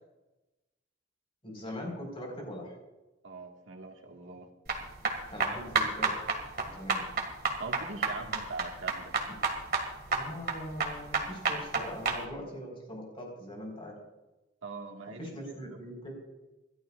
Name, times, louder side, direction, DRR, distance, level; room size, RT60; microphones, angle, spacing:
voice 1, 1.4-2.8 5.3-6.1 6.7-7.1 9.3-9.4 10.1-14.0 15.2-16.1, equal, 30° left, 0 dB, 4.5 m, -41 dB
voice 2, 3.2-4.5 7.6-9.1 14.6-15.8, right 3 dB, 85° right, 2 dB, 1.8 m, -42 dB
sound 1, 4.7-12.2, right 4 dB, 50° right, 2.0 m, -31 dB
27.5 x 12.0 x 2.5 m, 1.1 s
head